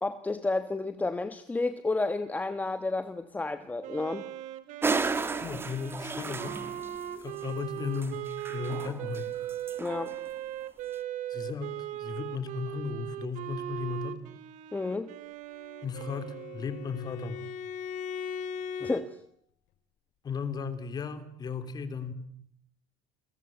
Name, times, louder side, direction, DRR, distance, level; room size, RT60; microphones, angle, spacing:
voice 1, 0.0-4.2 9.8-10.2 14.7-15.1 18.8-19.2, left 3 dB, 10° left, 1.3 m, -31 dB
Wind instrument woodwind instrument, 3.8-17.2, right 12 dB, 60° right, 2.8 m, -39 dB
sound 1, 4.8-7.0 7.4-7.5 7.9-9.2 9.5-10.1, right 4 dB, 15° right, 1.9 m, -33 dB
voice 2, 5.4-6.6 7.2-9.3 11.3-14.2 15.8-17.5 20.2-22.1, left 5 dB, 30° left, 3.3 m, -36 dB
Bowed string instrument, 15.5-19.1, left 6 dB, 65° left, 3.5 m, -39 dB
29.5 x 22.5 x 9.1 m
cardioid pair, 155°, 14 cm